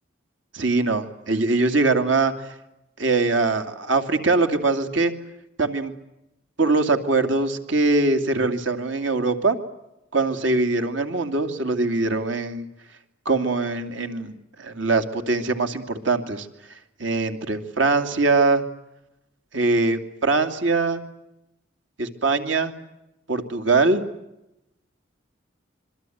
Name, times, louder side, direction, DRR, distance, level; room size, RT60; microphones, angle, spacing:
voice 1, 0.5-2.5 3.0-5.1 5.6-5.9 6.6-9.6 10.1-12.7 13.2-16.5 17.0-18.6 19.5-21.0 22.0-22.7 23.3-24.0, right 3 dB, 75° right, 7 dB, 2.7 m, -22 dB
26.5 x 24.0 x 9.4 m, 0.89 s
head